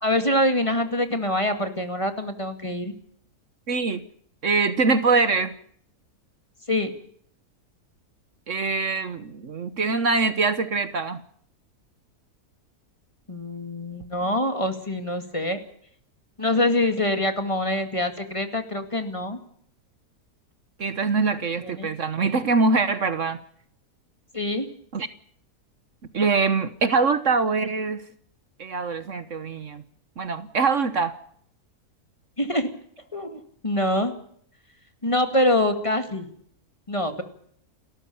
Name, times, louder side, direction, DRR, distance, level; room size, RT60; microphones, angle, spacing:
voice 1, 0.0-2.9 6.7-6.9 13.3-15.6 16.4-19.4 21.6-21.9 24.3-24.7 32.4-32.7 33.1-34.1 35.0-36.3 36.9-37.2, left 1 dB, 20° left, 7 dB, 2.2 m, -25 dB
voice 2, 3.7-4.0 4.4-5.6 8.5-11.2 20.8-23.4 24.9-25.1 26.1-28.0 28.6-29.8 30.2-31.2, right 4 dB, 55° right, 12 dB, 1.4 m, -23 dB
29.5 x 14.0 x 7.1 m, 0.64 s
omnidirectional pair, 1.6 m